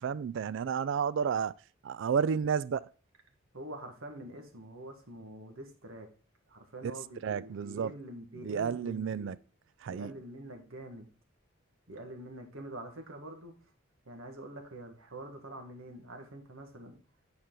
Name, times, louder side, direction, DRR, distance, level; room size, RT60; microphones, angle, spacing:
voice 1, 0.0-1.5 1.8-2.9 7.2-7.9 8.4-9.4 9.8-10.1, right 7 dB, 65° right, 0.3 m, -31 dB
voice 2, 3.5-6.1 6.5-9.4 9.9-11.1 11.9-13.5 14.0-17.0, right 1 dB, 90° right, 1.6 m, -45 dB
9.5 x 4.4 x 3.8 m
head